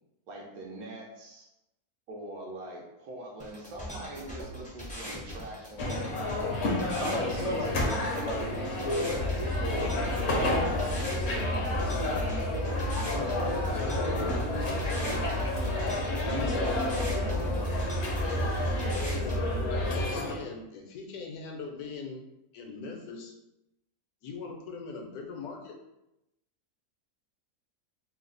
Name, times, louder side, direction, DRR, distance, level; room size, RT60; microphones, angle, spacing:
voice 1, 0.3-1.5 2.1-5.9 6.9-8.1 11.2-16.2 16.7-17.8, right 1 dB, 80° right, -1 dB, 1.2 m, -42 dB
sound 1, 3.4-19.4, equal, 10° left, 0.4 m, -41 dB
sound 2, 5.8-20.4, left 2 dB, 60° left, 0.7 m, -31 dB
voice 2, 7.0-11.3 11.7-11.9 14.0-14.3 14.8-15.3 16.2-16.7, equal, 55° right, -7 dB, 0.4 m, -37 dB
sound 3, 9.1-20.0, equal, 40° right, 0.8 m, -33 dB
voice 3, 18.9-22.2 22.5-23.3 24.2-25.8, left 4 dB, 80° left, 2 dB, 1.1 m, -41 dB
3.1 x 2.0 x 3.8 m, 0.89 s
omnidirectional pair, 1.6 m